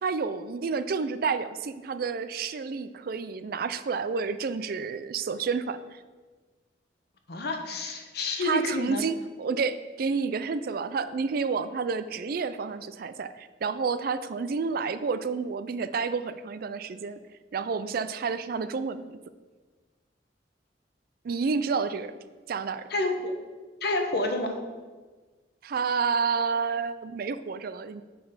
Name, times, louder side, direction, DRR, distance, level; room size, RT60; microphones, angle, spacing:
voice 1, 0.0-6.0 8.4-17.2 17.5-19.2 21.2-22.1 22.5-22.9 25.6-28.0, right 5 dB, 55° right, 12 dB, 0.4 m, -30 dB
voice 2, 7.3-9.0 22.9-23.3 23.8-24.6, left 2 dB, 65° left, 4 dB, 1.0 m, -29 dB
6.7 x 5.7 x 5.5 m, 1.3 s
head